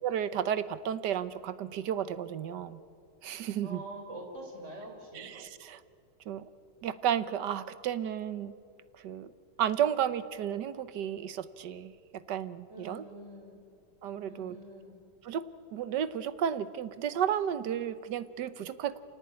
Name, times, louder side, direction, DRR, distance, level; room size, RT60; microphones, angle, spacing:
voice 1, 0.0-2.8 3.2-3.8 5.1-5.8 6.3-6.5 6.8-8.5 9.0-9.3 9.6-13.0 14.0-14.6 15.2-19.0, right 9 dB, 75° right, 15 dB, 1.5 m, -33 dB
voice 2, 3.6-5.3 12.7-13.6 14.2-14.9, right 1 dB, 40° right, 2 dB, 4.9 m, -45 dB
26.5 x 18.5 x 9.7 m, 2.5 s
omnidirectional pair, 1.9 m